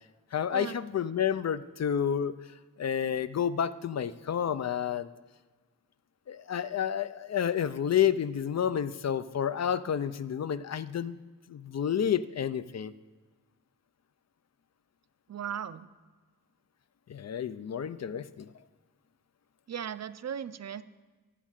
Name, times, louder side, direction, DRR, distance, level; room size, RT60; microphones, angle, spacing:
voice 1, 0.3-2.3 2.8-5.1 6.3-11.2 11.5-12.9 17.1-18.5, left 8 dB, 50° left, 15 dB, 0.4 m, -30 dB
voice 2, 15.3-15.9 19.7-20.8, right 8 dB, 50° right, 14 dB, 0.5 m, -37 dB
12.0 x 8.2 x 7.4 m, 1.4 s
wide cardioid pair, 170°, 34 cm